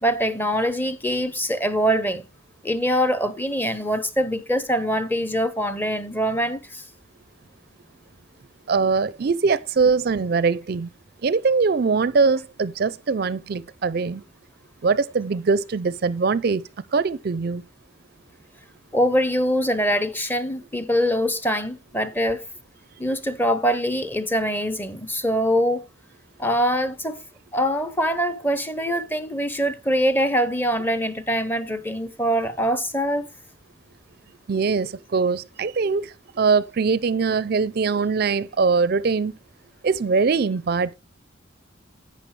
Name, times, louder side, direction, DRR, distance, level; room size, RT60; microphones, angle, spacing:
voice 1, 0.0-2.3 2.6-6.9 18.9-22.4 23.0-25.9 26.4-27.2 27.5-33.3, equal, 10° left, 0.7 m, -23 dB
voice 2, 8.7-10.9 11.2-14.2 14.8-16.6 16.9-17.6 34.5-39.4 39.8-40.9, right 4 dB, 50° right, 0.4 m, -22 dB
11.5 x 8.7 x 3.2 m
head